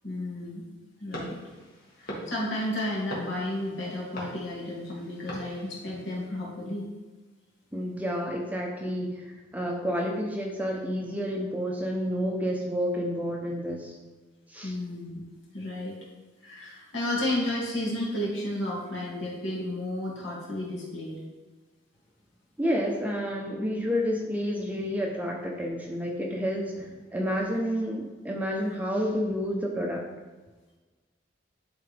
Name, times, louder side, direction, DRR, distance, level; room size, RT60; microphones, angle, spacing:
voice 1, 0.0-0.6 1.0-1.4 2.0-6.9 14.6-15.2 15.5-16.0 16.4-21.2, left 1 dB, 70° left, -4 dB, 2.4 m, -32 dB
sound 1, 1.1-6.3, equal, 50° left, 2.0 m, -42 dB
voice 2, 7.7-14.0 14.5-14.7 22.6-30.1, equal, 10° right, -1 dB, 0.7 m, -30 dB
11.5 x 4.0 x 3.4 m, 1.3 s
head